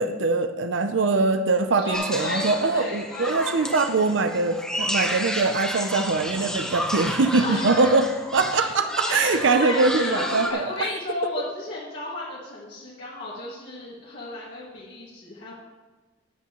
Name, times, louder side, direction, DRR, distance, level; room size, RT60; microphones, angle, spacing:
voice 1, 0.0-8.1 8.3-10.9, right 3 dB, 75° right, 8 dB, 0.6 m, -22 dB
voice 2, 1.8-3.4 7.4-7.9 9.0-15.6, left 2 dB, 65° left, -8 dB, 2.1 m, -33 dB
sound 1, 1.9-10.5, equal, 5° left, 0.9 m, -31 dB
13.5 x 9.8 x 3.0 m, 1.3 s
head